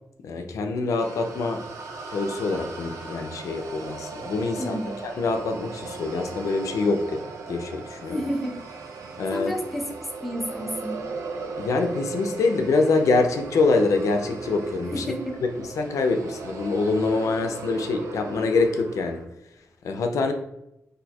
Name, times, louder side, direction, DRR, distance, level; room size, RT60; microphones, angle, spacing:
voice 1, 0.2-1.6 2.1-7.2 7.5-8.2 9.2-9.5 11.6-15.1 15.6-19.2 19.8-20.3, left 3 dB, 85° left, 5 dB, 0.4 m, -25 dB
sound 1, 1.0-19.2, right 4 dB, 80° right, 0.4 m, -37 dB
voice 2, 4.6-5.0 8.1-8.6 9.3-9.9 10.2-11.0 14.9-15.4, equal, ahead, 1 dB, 0.4 m, -30 dB
4.1 x 2.5 x 2.3 m, 0.83 s
wide cardioid pair, 140°, 5 cm